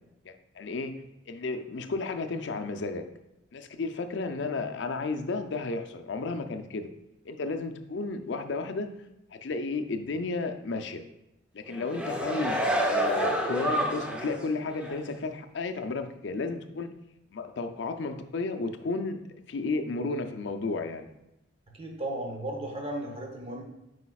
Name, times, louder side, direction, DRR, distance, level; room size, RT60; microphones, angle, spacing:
voice 1, 0.2-1.0 1.3-3.1 3.5-6.9 7.3-8.9 9.3-11.0 11.5-16.9 17.3-19.2 19.5-21.1, left 3 dB, 65° left, 7 dB, 0.5 m, -33 dB
sound 1, 11.7-14.4 14.8-15.0, right 1 dB, 5° right, 0.5 m, -28 dB
voice 2, 21.7-23.6, right 1 dB, 30° right, 1 dB, 1.0 m, -35 dB
8.2 x 4.9 x 2.3 m, 0.88 s
head